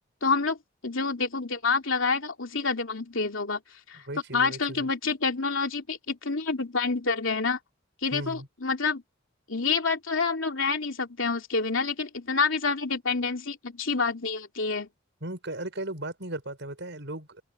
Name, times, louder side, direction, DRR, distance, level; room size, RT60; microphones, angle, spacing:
voice 1, 0.2-0.6 0.8-3.6 3.9-4.0 4.3-7.6 8.0-9.0 9.5-14.9, left 4 dB, 70° left, 3.2 m, -28 dB
voice 2, 3.9-4.9 8.1-8.5 15.2-17.4, right 1 dB, 60° right, 7.1 m, -36 dB
head